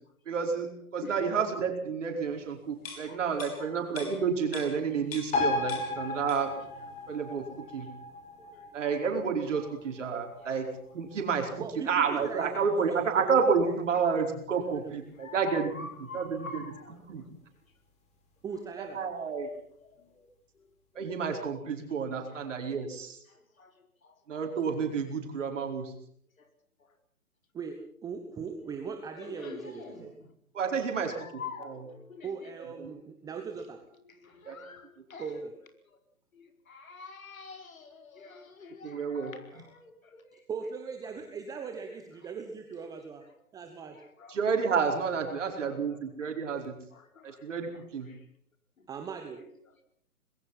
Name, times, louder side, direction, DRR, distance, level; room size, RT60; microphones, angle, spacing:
voice 1, 0.3-6.5 7.1-7.9 8.7-10.7 10.9-17.2 18.8-19.5 20.9-23.2 24.3-25.9 30.5-31.9 32.8-32.9 34.4-34.6 38.8-39.3 44.3-46.7 47.2-48.1, right 5 dB, 55° right, 3 dB, 4.9 m, -30 dB
sound 1, 2.8-5.4 5.7-6.6 7.0-7.1, left 5 dB, 40° left, 6.3 m, -44 dB
voice 2, 3.0-3.7 15.2-16.9 20.1-20.3 23.6-23.7 29.4-30.1 30.9-32.3 34.2-35.2 36.4-40.4 44.2-44.3 45.6-45.7 46.9-47.4 48.1-48.2, left 4 dB, 65° left, 5 dB, 4.9 m, -45 dB
sound 2, 5.3-12.3 12.6-12.7, left 3 dB, 15° left, 4.1 m, -36 dB
voice 3, 11.6-13.4 13.6-14.0 14.6-14.9 18.4-19.0 27.5-30.2 32.2-33.8 35.2-35.5 39.5-39.6 40.5-43.2 43.5-44.0 48.9-49.4, right 6 dB, 10° right, 5 dB, 1.1 m, -39 dB
25.0 x 21.0 x 5.8 m, 0.66 s
figure-of-eight pair, 135°, 44 cm